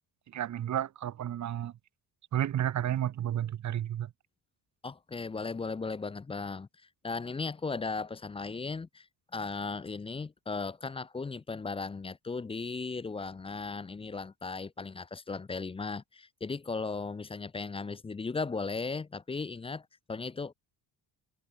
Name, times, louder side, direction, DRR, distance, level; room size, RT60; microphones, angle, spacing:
voice 1, 0.3-1.7 2.3-4.1, right 11 dB, 35° right, 0.6 m, -32 dB
voice 2, 4.8-6.7 7.0-9.1 9.3-20.5, left 4 dB, 15° left, 0.4 m, -36 dB
supercardioid pair, 70°, 48 cm